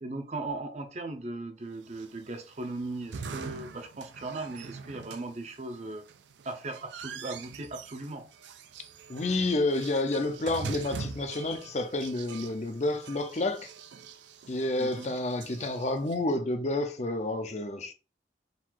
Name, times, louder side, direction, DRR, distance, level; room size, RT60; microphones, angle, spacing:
voice 1, 0.0-6.0 6.4-8.3 14.8-15.2, right 2 dB, 40° right, 0.6 m, -38 dB
sound 1, 1.9-16.2, right 5 dB, 85° right, 0.4 m, -44 dB
voice 2, 9.1-13.7 14.5-17.9, left 2 dB, 40° left, 0.5 m, -29 dB
3.9 x 2.5 x 4.6 m
head